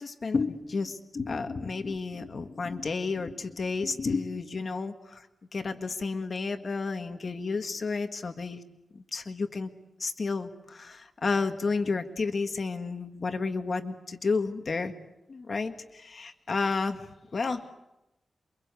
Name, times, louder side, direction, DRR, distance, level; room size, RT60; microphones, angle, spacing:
voice 1, 0.0-5.2 5.5-8.6 9.1-9.7 10.0-14.9 15.3-17.0 17.3-17.7, left 4 dB, 45° left, 7 dB, 1.6 m, -31 dB
28.0 x 24.0 x 8.3 m, 0.91 s
wide cardioid pair, 150°, 0 cm